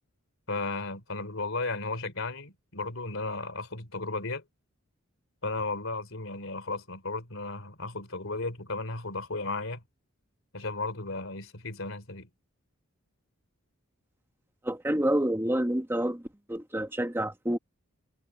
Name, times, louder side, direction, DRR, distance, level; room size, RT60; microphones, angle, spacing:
voice 1, 0.5-4.4 5.4-9.8 10.5-12.3, left 3 dB, 65° left, 3.6 m, -34 dB
voice 2, 14.6-16.2 16.5-17.6, right 1 dB, 10° right, 1.3 m, -28 dB
head